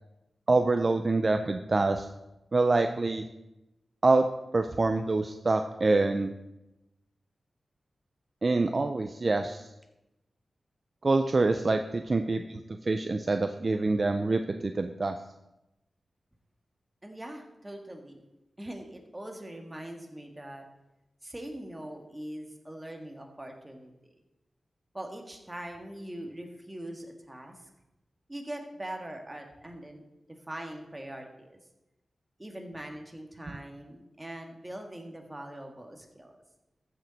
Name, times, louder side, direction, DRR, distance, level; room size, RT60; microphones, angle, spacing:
voice 1, 0.5-2.1 2.5-3.2 4.0-4.3 4.5-6.3 8.4-9.7 11.0-15.2, right 3 dB, 40° right, 7 dB, 0.5 m, -26 dB
voice 2, 17.0-18.3 18.6-20.6 21.2-24.1 24.9-27.5 28.3-30.0 30.5-31.6 32.4-36.3, right 1 dB, 15° right, 3 dB, 1.7 m, -42 dB
14.5 x 6.6 x 4.2 m, 0.94 s
wide cardioid pair, 80°, 0 cm